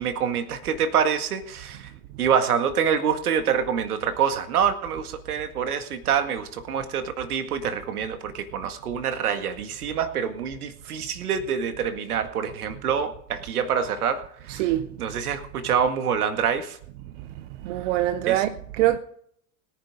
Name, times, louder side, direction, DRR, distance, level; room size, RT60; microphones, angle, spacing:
voice 1, 0.0-1.9 2.2-14.7 15.0-16.8 17.8-17.9 18.2-18.4, right 7 dB, 70° right, 1.9 m, -26 dB
voice 2, 14.5-14.9 17.6-19.0, right 14 dB, 50° right, 0.9 m, -24 dB
22.0 x 10.0 x 3.7 m
figure-of-eight pair, 90°, 47 cm